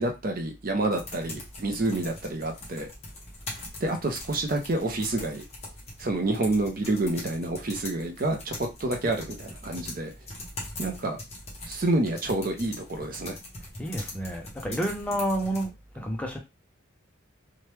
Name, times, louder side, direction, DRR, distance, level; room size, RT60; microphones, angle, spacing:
voice 1, 0.0-2.9 3.8-5.4 6.0-10.1 10.8-11.2 11.7-13.4, right 2 dB, 45° right, 0.6 m, -28 dB
sound 1, 0.9-15.7, left 2 dB, 30° left, 0.9 m, -42 dB
voice 2, 13.8-16.4, right 1 dB, 5° left, 0.5 m, -30 dB
3.0 x 2.2 x 3.2 m
head